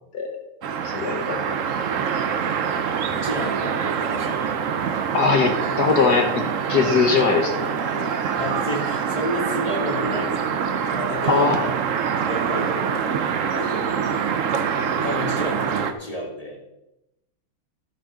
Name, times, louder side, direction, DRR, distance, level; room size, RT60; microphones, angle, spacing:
sound 1, 0.6-15.9, right 7 dB, 85° right, 0.6 m, -25 dB
voice 1, 0.8-1.4 5.1-6.4 6.7-8.1 11.3-11.6, left 4 dB, 50° left, 4 dB, 1.6 m, -21 dB
voice 2, 3.1-4.4 6.7-7.3 8.4-11.7 12.3-13.0 13.5-14.0 14.9-16.6, equal, 15° left, -2 dB, 2.2 m, -31 dB
12.0 x 7.6 x 5.2 m, 0.92 s
omnidirectional pair, 2.4 m